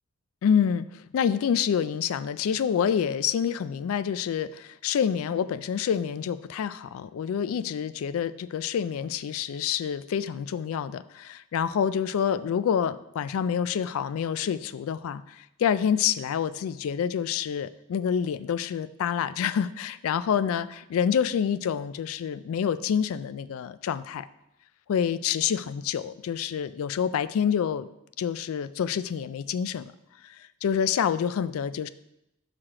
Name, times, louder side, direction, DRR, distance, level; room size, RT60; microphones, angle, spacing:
voice 1, 0.4-24.3 24.9-27.9 28.2-29.9 30.2-31.9, left 8 dB, 70° left, 14 dB, 0.3 m, -27 dB
5.8 x 4.8 x 4.9 m, 0.84 s
head